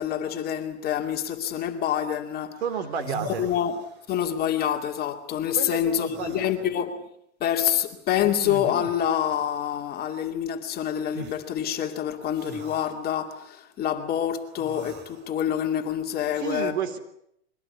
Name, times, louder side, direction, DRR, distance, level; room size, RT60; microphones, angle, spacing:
voice 1, 0.0-2.6 3.4-3.8 4.1-7.0 7.4-16.8, left 10 dB, 25° left, 2.4 m, -27 dB
sound 1, 2.6-2.7 2.9-4.2 6.0-6.6 8.2-9.0 11.1-11.4 12.3-12.9 14.5-15.3, right 4 dB, 30° right, 2.8 m, -41 dB
voice 2, 2.6-3.5 5.5-6.7 16.4-17.0, right 7 dB, 60° right, 3.8 m, -31 dB
23.5 x 17.5 x 9.7 m
hypercardioid pair, 130°, 36 cm